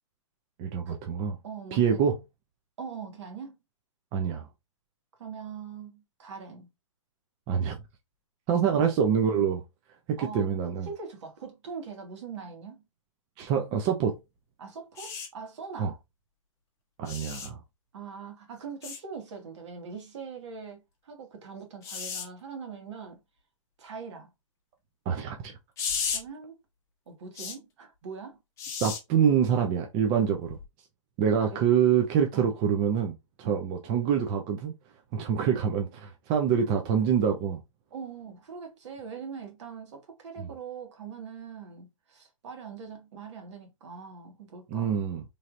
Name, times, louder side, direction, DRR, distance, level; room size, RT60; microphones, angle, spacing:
voice 1, 0.6-1.3 1.7-2.2 4.1-4.5 7.5-7.8 8.5-9.6 10.1-10.9 13.4-14.2 15.8-15.9 17.0-17.6 25.1-25.5 28.8-30.6 31.2-34.7 35.1-37.6 40.4-40.5 44.7-45.2, right 7 dB, 25° right, 0.4 m, -26 dB
voice 2, 1.4-2.0 2.8-3.6 5.2-6.7 8.7-8.9 10.2-10.6 10.8-12.9 14.6-16.0 17.9-23.2 23.8-24.3 26.1-26.5 27.1-28.4 31.4-31.6 32.3-32.5 37.9-45.0, right 6 dB, 60° right, 1.3 m, -42 dB
sound 1, 15.0-15.3 17.1-17.5 18.8-19.0 21.8-22.3 25.8-26.2 27.4-27.6 28.6-29.0 30.5-30.6, left 6 dB, 15° left, 0.8 m, -33 dB
3.2 x 2.6 x 2.5 m
hypercardioid pair, 150°, 17 cm